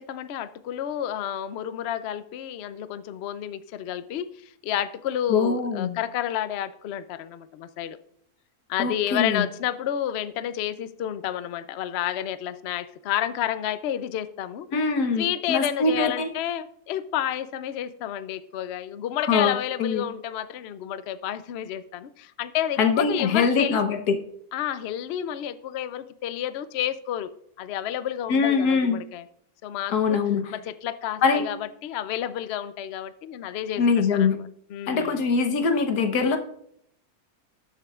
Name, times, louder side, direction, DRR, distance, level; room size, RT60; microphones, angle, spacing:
voice 1, 0.0-8.0 8.7-14.7 15.2-23.8 24.5-27.3 27.6-29.2 29.6-30.2 30.5-34.4 34.7-35.2, left 11 dB, 65° left, 13 dB, 0.6 m, -30 dB
voice 2, 5.3-6.0 8.8-9.5 14.7-16.3 19.3-19.5 19.8-20.1 22.8-24.2 28.3-29.0 29.9-30.5 31.2-31.5 33.8-34.4 34.9-36.4, left 5 dB, 85° left, 6 dB, 1.5 m, -23 dB
19.0 x 7.3 x 2.4 m, 0.71 s
omnidirectional pair, 1.6 m